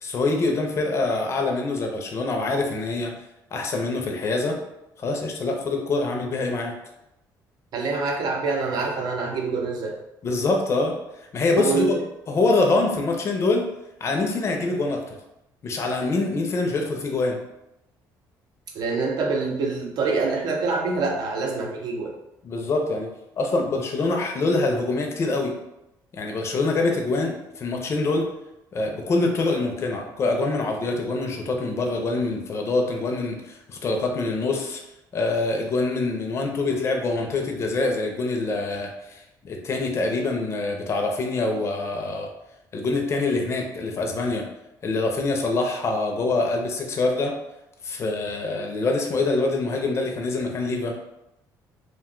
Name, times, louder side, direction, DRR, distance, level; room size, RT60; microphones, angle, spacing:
voice 1, 0.0-3.1 3.5-4.6 5.0-6.7 10.2-11.0 11.3-12.0 12.3-13.7 14.0-15.2 15.6-17.4 22.4-23.1 23.4-25.5 26.1-28.3 28.7-34.8 35.1-42.3 42.7-44.4 44.8-47.3 47.8-51.0, left 3 dB, 35° left, 2 dB, 0.6 m, -25 dB
voice 2, 7.7-10.0 11.5-12.0 18.7-22.1, right 4 dB, 60° right, 1 dB, 0.6 m, -25 dB
2.4 x 2.2 x 3.7 m, 0.90 s
cardioid pair, 125°, 8 cm